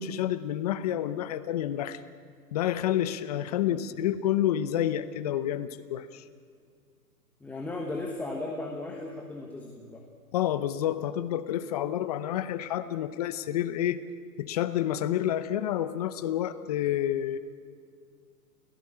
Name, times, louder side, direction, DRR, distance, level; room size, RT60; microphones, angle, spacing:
voice 1, 0.0-2.0 2.5-6.2 10.3-14.0 14.4-17.4, left 11 dB, 25° left, 13 dB, 0.8 m, -29 dB
voice 2, 7.4-10.0, left 2 dB, 5° left, 1 dB, 1.3 m, -36 dB
28.5 x 17.0 x 8.7 m, 2.2 s
hypercardioid pair, 150°, 47 cm